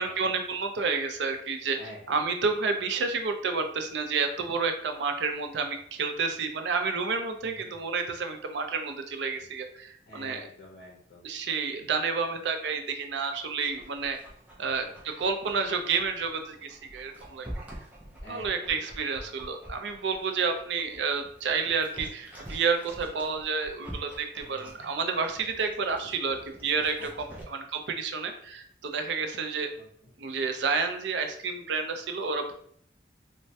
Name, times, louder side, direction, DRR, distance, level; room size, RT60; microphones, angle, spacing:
voice 1, 0.0-1.8 2.1-10.4 11.2-14.2 14.6-17.5 18.3-29.7 30.2-32.5, right 5 dB, 80° right, 6 dB, 0.4 m, -30 dB
voice 2, 1.7-2.3 7.4-7.8 10.1-11.2 15.0-15.2 18.2-18.9 24.4-24.9 27.0-27.4 29.8-30.1, left 1 dB, 60° left, -4 dB, 0.6 m, -48 dB
Dog, 13.7-27.4, right 1 dB, 10° right, 0.4 m, -46 dB
3.1 x 2.1 x 2.7 m, 0.63 s
head